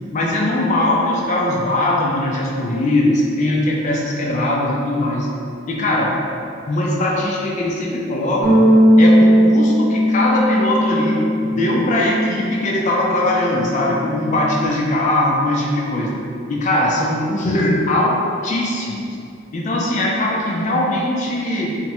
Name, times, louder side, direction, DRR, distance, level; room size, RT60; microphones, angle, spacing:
voice 1, 0.1-5.3 5.7-6.1 6.7-8.7 9.0-16.2 16.5-19.0 19.5-21.8, left 1 dB, 40° left, -2 dB, 0.3 m, -20 dB
Bass guitar, 8.4-14.7, equal, 60° left, 0.7 m, -17 dB
3.3 x 2.0 x 2.9 m, 2.6 s
head